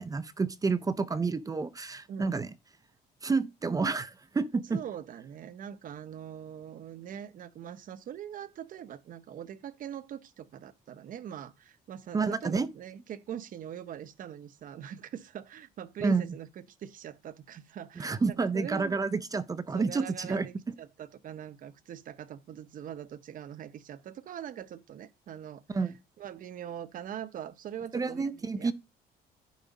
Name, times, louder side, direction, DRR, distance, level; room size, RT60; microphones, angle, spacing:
voice 1, 0.0-2.5 3.2-4.8 12.1-12.7 16.0-16.3 18.0-20.5 25.7-25.9 27.9-28.7, right 4 dB, 20° right, 0.6 m, -29 dB
voice 2, 4.7-19.0 19.7-28.7, right 9 dB, 55° right, 0.8 m, -42 dB
10.5 x 4.7 x 4.1 m
cardioid pair, 110°, 17 cm